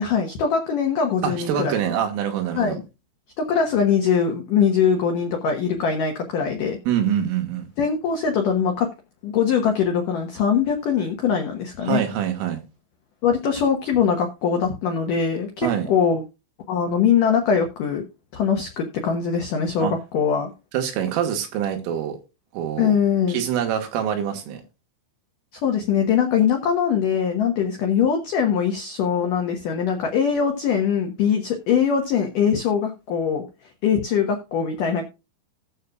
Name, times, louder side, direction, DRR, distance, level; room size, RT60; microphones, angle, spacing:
voice 1, 0.0-1.8 2.5-2.8 3.4-6.8 7.8-8.9 9.2-12.0 13.2-16.2 16.7-18.0 18.3-20.5 22.8-23.4 25.5-33.4 33.8-35.0, left 7 dB, 80° left, 1.9 m, -22 dB
voice 2, 1.2-2.8 6.9-7.7 11.8-12.6 15.6-15.9 19.8-20.0 20.7-22.2 22.5-22.9 23.3-24.6, right 9 dB, 80° right, 4.1 m, -25 dB
18.5 x 6.9 x 2.4 m
omnidirectional pair, 5.7 m